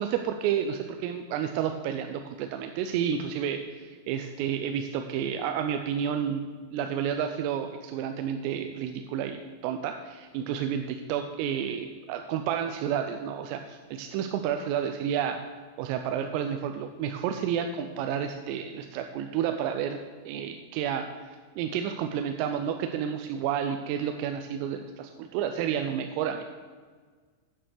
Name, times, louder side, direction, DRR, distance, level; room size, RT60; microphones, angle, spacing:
voice 1, 0.0-6.4 6.7-15.4 15.8-20.0 20.3-26.4, right 8 dB, 90° right, 6 dB, 3.2 m, -30 dB
9.3 x 7.5 x 6.5 m, 1.5 s
omnidirectional pair, 5.8 m